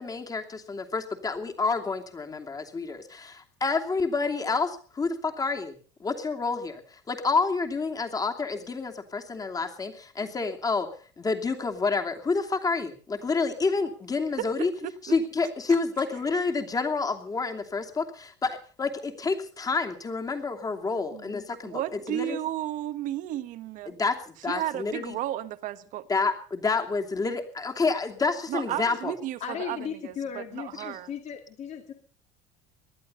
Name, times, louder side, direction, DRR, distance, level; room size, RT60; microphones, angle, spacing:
voice 1, 0.0-5.7 6.0-10.9 11.2-14.7 15.0-22.4 23.9-24.1 24.4-25.2 26.1-29.1, left 4 dB, 25° left, 5 dB, 2.8 m, -29 dB
voice 2, 14.4-14.9 21.1-21.3 21.6-23.9 24.5-26.1 28.5-29.8 30.0-31.1, right 13 dB, 60° right, 12 dB, 1.5 m, -33 dB
voice 3, 29.4-31.9, left 7 dB, 50° left, 4 dB, 2.4 m, -36 dB
19.5 x 12.0 x 5.5 m, 0.42 s
supercardioid pair, 100°, 15 cm